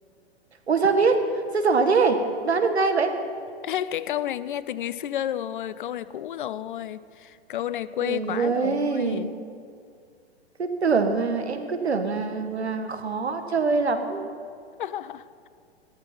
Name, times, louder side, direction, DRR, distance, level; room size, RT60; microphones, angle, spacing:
voice 1, 0.7-1.2 1.5-3.1 8.0-9.3 10.6-14.3, right 4 dB, 75° right, 7 dB, 1.6 m, -23 dB
voice 2, 3.6-9.3 14.8-15.5, left 11 dB, 50° left, 16 dB, 0.6 m, -31 dB
14.5 x 13.5 x 5.7 m, 2.3 s
figure-of-eight pair, 110°, 33 cm